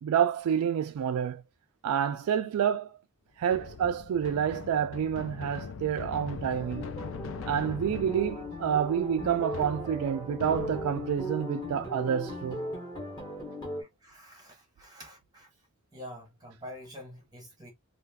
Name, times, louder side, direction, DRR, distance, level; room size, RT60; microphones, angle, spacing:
voice 1, 0.0-1.4 1.8-2.9 3.4-6.9 7.5-12.6, right 8 dB, 90° right, 0.3 m, -28 dB
sound 1, 3.4-11.2, left 5 dB, 70° left, 0.4 m, -41 dB
sound 2, 6.6-13.8, equal, 20° left, 1.0 m, -38 dB
voice 2, 13.8-15.5 15.9-17.7, equal, 20° right, 0.7 m, -47 dB
2.4 x 2.3 x 3.2 m
head